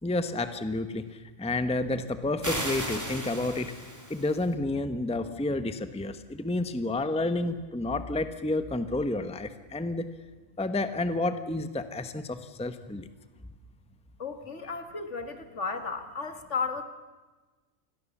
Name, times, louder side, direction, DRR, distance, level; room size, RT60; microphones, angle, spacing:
voice 1, 0.0-3.8 4.1-10.1 10.6-13.1, left 2 dB, 5° left, 10 dB, 0.9 m, -30 dB
sound 1, 2.4-4.5, equal, 15° right, 3.4 m, -35 dB
voice 2, 14.2-16.8, left 5 dB, 65° left, 8 dB, 2.2 m, -34 dB
27.5 x 21.5 x 7.3 m, 1.3 s
omnidirectional pair, 1.3 m